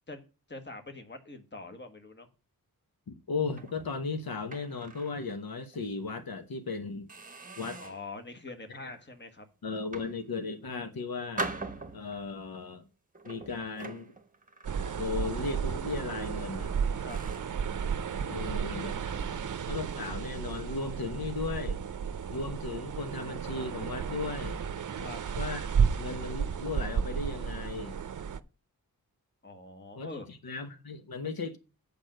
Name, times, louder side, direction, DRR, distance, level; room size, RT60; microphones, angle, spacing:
voice 1, 0.1-2.3 7.8-9.5 17.0-17.2 18.3-19.5 24.9-25.2 29.4-30.3, left 3 dB, 30° left, 1.4 m, -45 dB
voice 2, 3.1-7.1 7.6-7.8 8.8-8.9 9.6-11.5 11.9-12.9 13.2-14.1 14.9-16.7 18.3-19.1 19.7-21.8 22.3-24.6 25.4-28.0 30.0-31.6, left 4 dB, 80° left, 1.1 m, -36 dB
sound 1, 3.5-5.3 5.7-5.9 6.5-6.6 7.1-8.1 8.7-9.0 9.7-10.7 11.4-12.4 13.1-15.5 15.8-16.1 16.6-16.7 17.1-17.6, right 2 dB, 25° right, 1.0 m, -42 dB
sound 2, 14.6-28.4, right 6 dB, 60° right, 0.6 m, -33 dB
8.4 x 5.1 x 7.7 m
wide cardioid pair, 125°, 36 cm